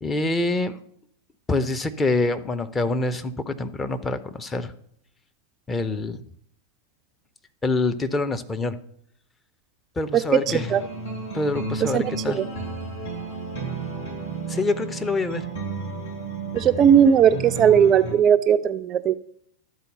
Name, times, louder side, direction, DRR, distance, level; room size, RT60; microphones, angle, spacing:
voice 1, 0.0-0.8 1.5-4.7 5.7-6.2 7.6-8.8 10.0-10.7 11.3-12.5 14.5-15.4, left 2 dB, 15° left, 9 dB, 0.6 m, -25 dB
sound 1, 10.4-18.1, right 3 dB, 70° left, 3.7 m, -32 dB
voice 2, 16.5-19.1, right 8 dB, 30° right, 10 dB, 0.3 m, -17 dB
12.0 x 4.0 x 5.4 m, 0.67 s
figure-of-eight pair, 90°, 0 cm